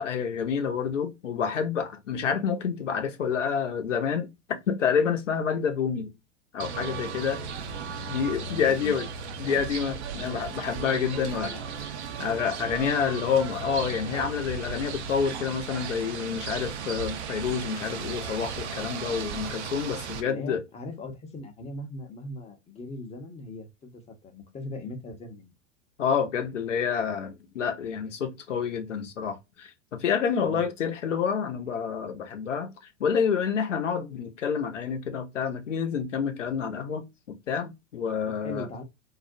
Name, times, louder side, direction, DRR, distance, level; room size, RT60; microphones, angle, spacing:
voice 1, 0.0-4.3 4.7-6.1 6.5-7.4 8.1-9.1 9.4-11.5 12.2-20.6 26.0-32.7 33.0-38.7, left 7 dB, 80° left, 0.7 m, -28 dB
sound 1, 6.6-20.2, right 6 dB, 65° right, 0.6 m, -36 dB
voice 2, 7.0-7.5 8.1-9.0 10.1-10.6 11.0-11.7 20.2-25.5 30.4-30.6 38.3-38.8, left 2 dB, 15° left, 0.6 m, -40 dB
2.3 x 2.1 x 2.5 m
figure-of-eight pair, 85°, 37 cm